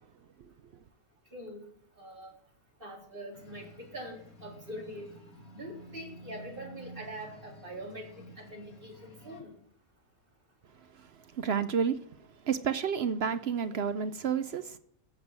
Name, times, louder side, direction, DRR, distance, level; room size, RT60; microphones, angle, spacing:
voice 1, 1.3-1.6 2.0-2.3 2.8-5.1 5.5-8.1 8.4-9.5, right 1 dB, 40° right, 4.1 m, -43 dB
sound 1, 3.3-9.4, equal, 80° left, 3.3 m, -51 dB
voice 2, 11.3-12.0 12.4-14.8, right 7 dB, 55° right, 0.8 m, -30 dB
15.0 x 7.8 x 7.3 m
omnidirectional pair, 1.5 m